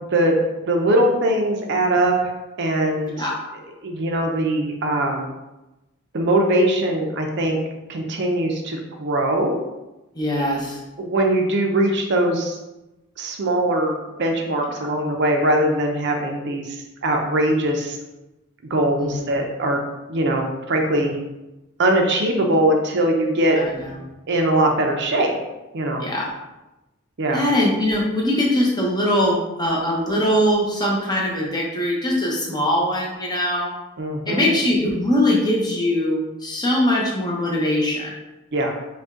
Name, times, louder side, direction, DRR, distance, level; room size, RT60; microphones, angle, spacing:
voice 1, 0.1-2.1 2.6-3.3 3.8-5.3 6.1-7.6 7.9-9.6 11.0-12.6 13.2-18.0 18.7-19.8 20.1-21.2 21.8-23.6 24.3-25.3 25.7-26.0 27.2-27.4 34.0-34.5 38.5-38.7, right 1 dB, 55° right, 2 dB, 0.6 m, -21 dB
voice 2, 10.2-10.8 14.8-14.9 19.0-19.3 23.5-24.0 26.0-26.3 27.3-33.7 34.3-38.1, left 1 dB, 20° left, -2 dB, 0.8 m, -21 dB
5.1 x 2.3 x 3.6 m, 1.0 s
head